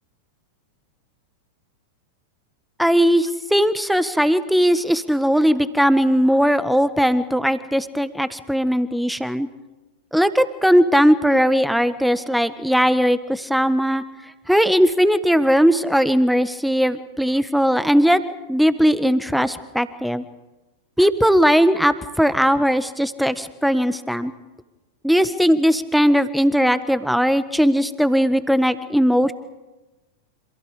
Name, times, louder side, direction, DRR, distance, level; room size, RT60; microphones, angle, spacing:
voice 1, 2.8-9.5 10.1-14.0 14.5-18.2 18.5-20.2 21.0-24.3 25.0-29.3, equal, ahead, 14 dB, 1.4 m, -18 dB
28.5 x 26.5 x 5.0 m, 1.1 s
figure-of-eight pair, 90°, 0 cm